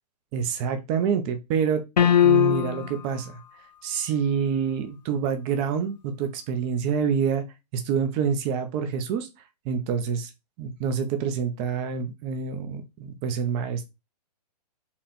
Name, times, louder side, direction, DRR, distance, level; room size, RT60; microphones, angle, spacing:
voice 1, 0.3-1.8 2.2-3.4 3.8-7.4 7.7-9.3 9.6-10.3 10.6-13.8, right 7 dB, 25° right, 0.7 m, -27 dB
sound 1, 2.0-3.0, left 10 dB, 80° left, 0.7 m, -19 dB
4.3 x 2.5 x 4.2 m
hypercardioid pair, 140°, 21 cm